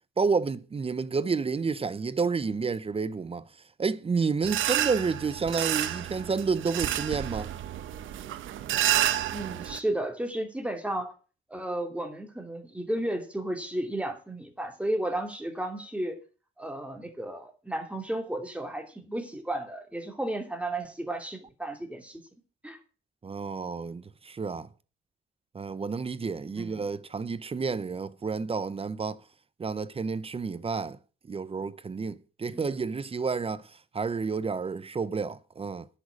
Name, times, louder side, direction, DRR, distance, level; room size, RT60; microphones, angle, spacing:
voice 1, 0.2-3.5 3.8-7.5 23.2-24.7 25.5-29.2 29.6-31.0 31.3-35.9, right 5 dB, 30° right, 0.8 m, -30 dB
sound 1, 4.4-9.8, right 12 dB, 80° right, 1.0 m, -30 dB
voice 2, 9.3-11.1 11.5-16.2 16.6-22.2 22.6-22.8 26.6-26.8 32.5-32.6, right 1 dB, 5° right, 2.8 m, -33 dB
10.0 x 6.4 x 8.7 m
cardioid pair, 90°, 20 cm